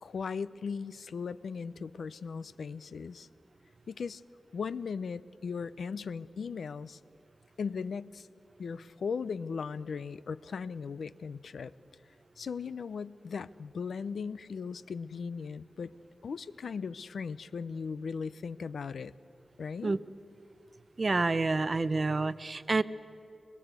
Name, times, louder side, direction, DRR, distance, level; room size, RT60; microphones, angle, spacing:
voice 1, 0.0-3.3 3.9-4.2 4.5-7.0 7.6-8.3 8.6-11.7 12.4-15.9 16.2-19.1 19.6-19.9, left 5 dB, 85° left, 15 dB, 0.5 m, -38 dB
voice 2, 21.0-22.8, right 3 dB, 40° right, 15 dB, 0.6 m, -28 dB
22.5 x 22.0 x 8.2 m, 2.6 s
wide cardioid pair, 100°, 0 cm